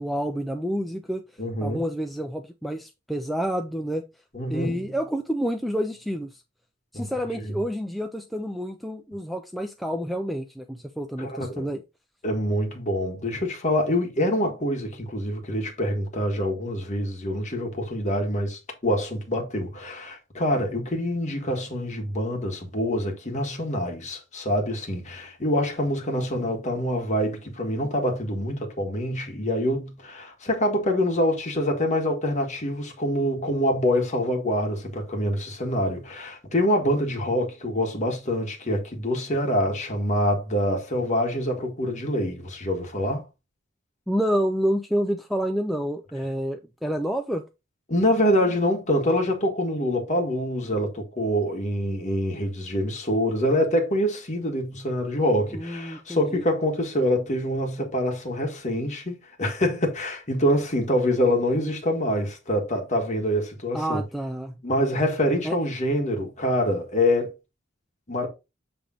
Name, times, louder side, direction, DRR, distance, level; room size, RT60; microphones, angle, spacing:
voice 1, 0.0-1.2 1.6-4.0 4.5-6.4 6.9-11.8 44.1-47.4 55.5-56.4 63.7-64.6 65.4-65.6, equal, ahead, 0.4 m, -28 dB
voice 2, 1.4-1.8 4.3-4.9 6.9-7.0 7.4-7.6 11.2-11.7 12.2-43.2 47.9-64.0 64.6-67.3 68.1-68.3, equal, 40° left, 1.6 m, -25 dB
7.3 x 3.5 x 3.8 m
head